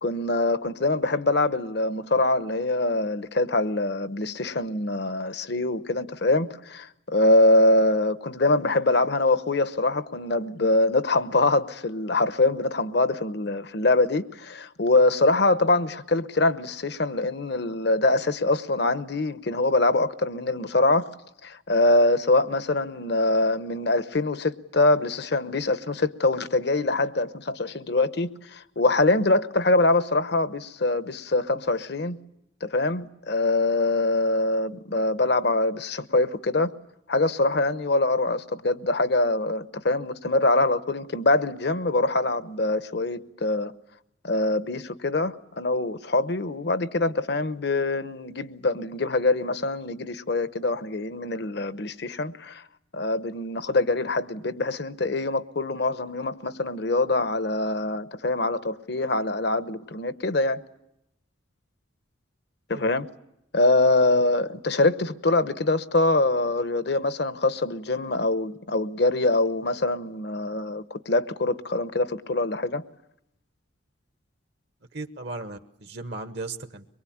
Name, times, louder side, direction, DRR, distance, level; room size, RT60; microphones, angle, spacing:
voice 1, 0.0-21.1 21.4-32.2 32.6-36.7 37.1-43.7 44.2-52.6 52.9-60.6 62.7-63.1 63.5-72.8, left 2 dB, 55° left, 1.0 m, -24 dB
voice 2, 74.9-76.8, right 2 dB, 55° right, 1.2 m, -36 dB
24.0 x 23.0 x 8.7 m
head